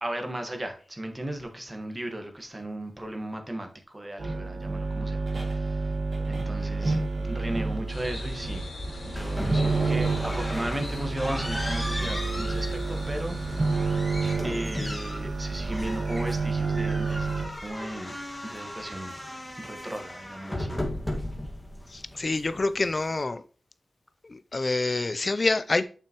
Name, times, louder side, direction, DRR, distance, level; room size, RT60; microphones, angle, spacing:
voice 1, 0.0-5.9 6.3-8.7 9.0-13.9 14.4-18.1 18.4-19.1 19.6-20.8, right 1 dB, 25° right, 1.5 m, -36 dB
sound 1, 4.2-17.5, right 3 dB, 80° right, 2.3 m, -29 dB
sound 2, 7.9-14.3, left 1 dB, 85° left, 2.8 m, -39 dB
sound 3, 9.2-23.2, left 1 dB, 15° left, 1.8 m, -36 dB
voice 2, 21.9-23.4 24.2-25.8, left 3 dB, 45° left, 0.5 m, -27 dB
6.9 x 5.9 x 3.0 m
cardioid pair, 55°, 0 cm